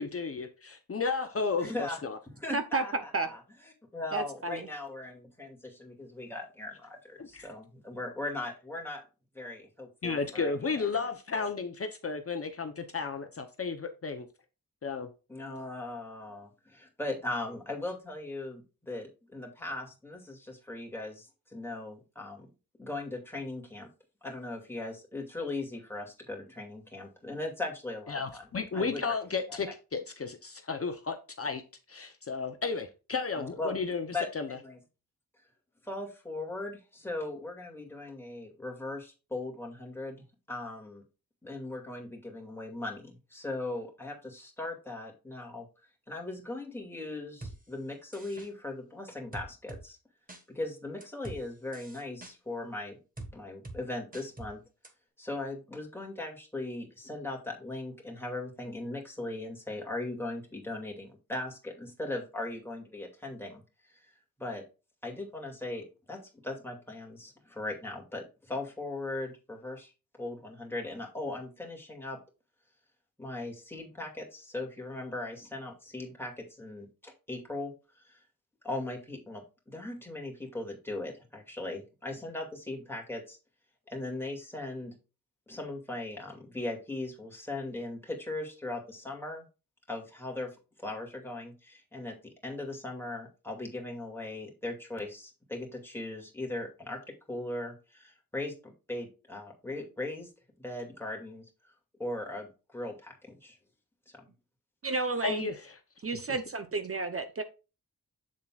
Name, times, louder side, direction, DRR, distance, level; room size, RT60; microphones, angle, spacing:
voice 1, 0.0-2.2 7.2-7.5 10.0-14.3 14.8-15.1 28.1-31.6 31.9-34.1 34.3-34.5 105.2-105.7, left 4 dB, 40° left, 0.8 m, -33 dB
voice 2, 1.6-2.0 2.3-3.4 3.9-9.0 9.3-11.5 15.3-22.5 22.8-23.9 24.2-28.4 28.7-29.2 29.5-29.6 33.3-33.8 34.1-34.8 35.8-40.2 40.5-41.0 41.4-45.7 46.1-50.0 50.5-53.0 53.3-54.6 55.2-63.6 63.9-64.1 64.4-64.6 65.0-69.9 70.2-72.2 73.2-78.2 78.6-83.4 83.9-84.9 85.5-89.4 89.9-92.1 92.4-97.0 97.3-100.3 100.6-101.4 102.0-103.6 104.1-104.3, left 2 dB, 5° left, 2.3 m, -39 dB
voice 3, 2.5-3.3 4.1-4.7 104.8-105.5 106.0-107.4, right 3 dB, 40° right, 0.8 m, -32 dB
sound 1, 47.4-47.6 48.1-48.5 49.3-49.8 50.3-50.4 51.0-51.4 51.7-52.3 53.2-53.3 53.6-53.8 54.1-54.5 54.8-54.9, right 2 dB, 25° right, 1.6 m, -43 dB
7.6 x 7.3 x 2.4 m
wide cardioid pair, 150°, 35 cm